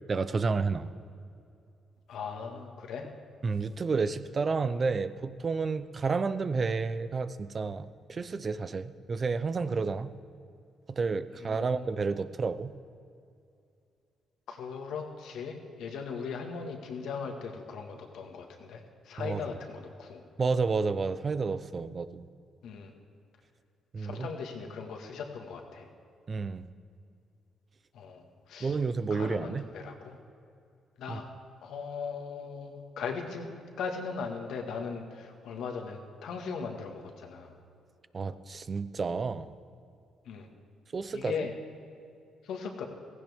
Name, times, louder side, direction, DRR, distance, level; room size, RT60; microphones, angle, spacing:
voice 1, 0.1-0.9 3.4-10.1 10.9-12.7 19.2-19.4 20.4-22.3 23.9-24.3 26.3-26.6 28.6-29.7 31.1-31.2 38.1-39.5 40.9-41.5, right 4 dB, 40° right, 13 dB, 0.6 m, -30 dB
voice 2, 2.1-3.1 11.4-11.8 14.5-20.2 22.6-22.9 24.0-25.9 27.9-28.2 28.5-28.8 29.1-30.2 31.0-31.3 31.6-33.5 33.8-37.5 40.3-40.5 41.1-41.5 42.4-42.8, left 5 dB, 80° left, 3 dB, 1.7 m, -38 dB
16.0 x 16.0 x 3.6 m, 2.5 s
cardioid pair, 90°, 0 cm